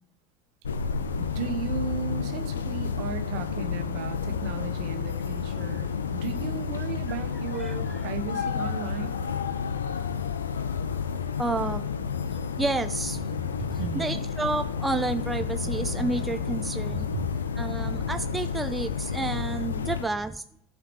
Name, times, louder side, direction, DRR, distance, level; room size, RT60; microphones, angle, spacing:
sound 1, 0.6-20.1, left 6 dB, 85° left, 0.6 m, -31 dB
voice 1, 1.2-9.1 13.6-14.2 16.9-17.2, right 6 dB, 60° right, 7 dB, 1.1 m, -35 dB
voice 2, 7.6-8.1 8.3-8.5 11.4-11.9 12.6-20.4, right 3 dB, 10° right, 8 dB, 0.5 m, -31 dB
15.0 x 5.8 x 3.1 m, 0.70 s
hypercardioid pair, 80°, 0 cm